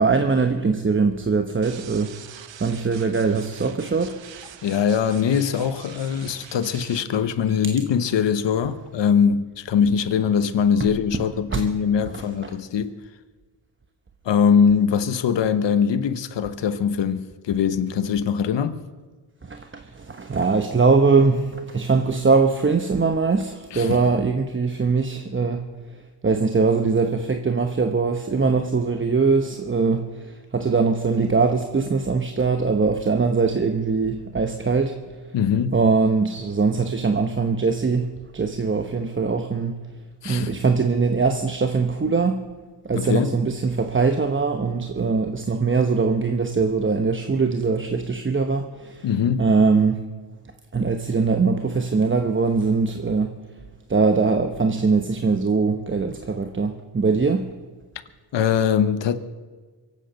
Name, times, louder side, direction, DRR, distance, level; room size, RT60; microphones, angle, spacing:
voice 1, 0.0-2.1 2.6-4.2 11.5-11.7 12.1-12.2 19.4-25.7 25.9-35.0 35.7-39.8 40.2-42.4 42.8-49.1 49.4-50.0 50.7-53.4 53.9-57.5, right 4 dB, 25° right, 1.0 m, -22 dB
sound 1, 1.6-7.0, right 9 dB, 80° right, 1.1 m, -44 dB
voice 2, 4.6-12.9 14.2-18.8 23.7-24.0 35.3-35.8 40.2-40.6 42.9-43.3 49.0-49.5 58.3-59.2, left 7 dB, 75° left, 1.1 m, -22 dB
24.0 x 8.5 x 6.5 m
cardioid pair, 85°, 44 cm